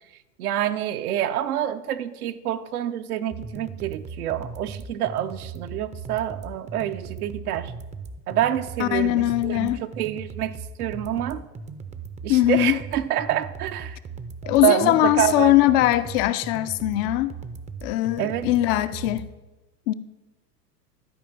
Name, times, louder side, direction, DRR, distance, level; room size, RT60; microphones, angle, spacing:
voice 1, 0.4-7.7 8.3-11.4 12.2-14.0 14.6-15.5 18.2-18.5, right 11 dB, 65° right, 0.8 m, -27 dB
sound 1, 3.3-19.3, right 5 dB, 15° right, 0.6 m, -38 dB
voice 2, 8.8-9.8 12.3-12.8 14.5-17.4 17.8-19.3 19.9-20.0, left 15 dB, 40° left, 0.5 m, -21 dB
12.5 x 5.0 x 7.2 m
hypercardioid pair, 95°, 48 cm